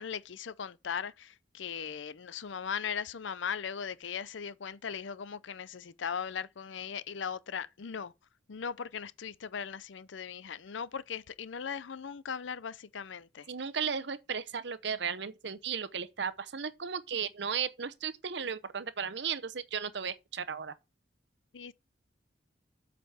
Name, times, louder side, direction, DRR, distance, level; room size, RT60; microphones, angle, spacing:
voice 1, 0.0-8.1 8.5-13.5 21.5-21.7, left 7 dB, 85° left, 0.6 m, -38 dB
voice 2, 13.5-20.7, right 6 dB, 70° right, 0.8 m, -35 dB
8.2 x 4.9 x 5.7 m
head